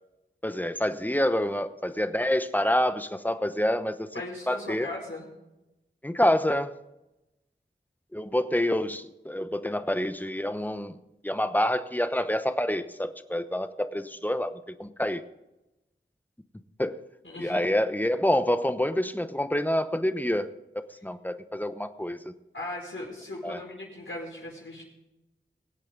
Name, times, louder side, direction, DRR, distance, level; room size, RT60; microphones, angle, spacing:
voice 1, 0.4-4.1 4.5-4.9 6.0-6.7 8.1-10.9 11.2-15.2 16.8-17.0 17.4-20.5 20.7-22.3 23.4-23.6, left 1 dB, 10° left, 10 dB, 0.9 m, -27 dB
voice 2, 4.1-5.2 17.2-17.6 22.5-24.8, left 2 dB, 75° left, -5 dB, 5.5 m, -38 dB
23.0 x 8.7 x 3.9 m, 0.94 s
wide cardioid pair, 50°, 20 cm